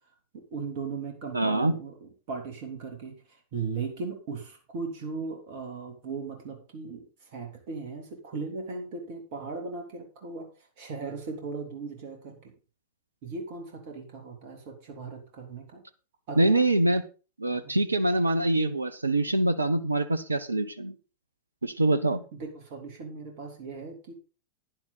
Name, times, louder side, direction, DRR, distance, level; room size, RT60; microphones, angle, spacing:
voice 1, 0.3-12.5 13.2-15.8 16.3-16.6 17.5-17.7 22.3-24.1, right 4 dB, 50° right, 3 dB, 3.2 m, -38 dB
voice 2, 1.3-1.7 16.4-17.0 17.4-20.9 21.6-22.2, right 2 dB, 80° right, 13 dB, 0.8 m, -24 dB
11.0 x 10.5 x 4.0 m, 0.34 s
figure-of-eight pair, 90°, 0 cm